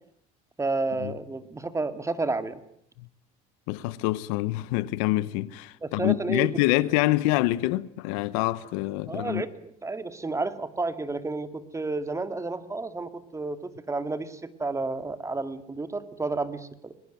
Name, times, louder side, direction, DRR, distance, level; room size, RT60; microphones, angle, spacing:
voice 1, 0.6-2.6 5.8-6.5 9.1-16.9, right 3 dB, 15° right, 2.4 m, -31 dB
voice 2, 3.7-9.4, left 18 dB, 85° left, 1.1 m, -26 dB
22.5 x 21.0 x 9.3 m
supercardioid pair, 95°, 18 cm